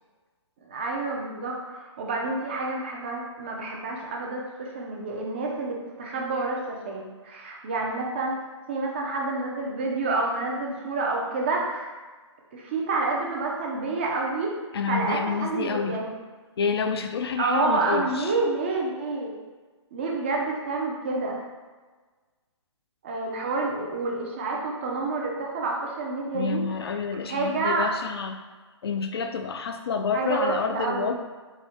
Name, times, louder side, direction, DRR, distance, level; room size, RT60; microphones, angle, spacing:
voice 1, 0.6-8.3 8.7-11.9 12.5-14.5 14.9-16.1 17.4-19.3 19.9-21.4 23.0-26.9 27.3-27.9 30.1-31.2, right 3 dB, 25° right, -1 dB, 0.4 m, -28 dB
voice 2, 14.7-16.0 16.6-18.4 26.3-28.4 28.8-31.2, left 5 dB, 55° left, 6 dB, 0.4 m, -28 dB
4.4 x 2.6 x 3.4 m, 1.4 s
hypercardioid pair, 165°, 16 cm